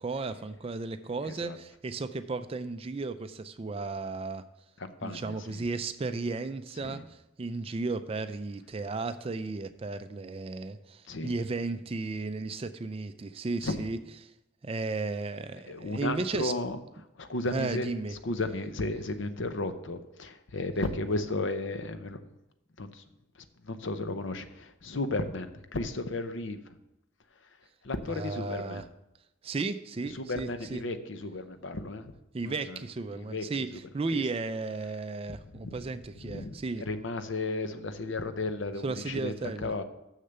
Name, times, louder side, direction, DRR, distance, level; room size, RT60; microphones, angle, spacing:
voice 1, 0.0-4.4 5.0-14.3 14.6-16.5 17.5-18.1 28.1-28.9 29.4-30.8 32.3-36.8 38.8-39.7, right 3 dB, 30° right, 11 dB, 0.3 m, -34 dB
voice 2, 1.3-1.6 4.8-5.6 6.8-7.0 11.1-11.3 13.6-13.9 15.7-16.8 17.2-17.9 18.2-22.2 22.8-23.0 23.6-26.6 27.8-28.8 30.1-32.1 32.4-32.8 33.1-33.4 34.1-34.2 35.6-35.8 36.2-36.5 36.9-39.3 39.6-39.8, left 2 dB, 65° left, 9 dB, 0.7 m, -34 dB
6.6 x 6.6 x 6.7 m, 0.90 s
head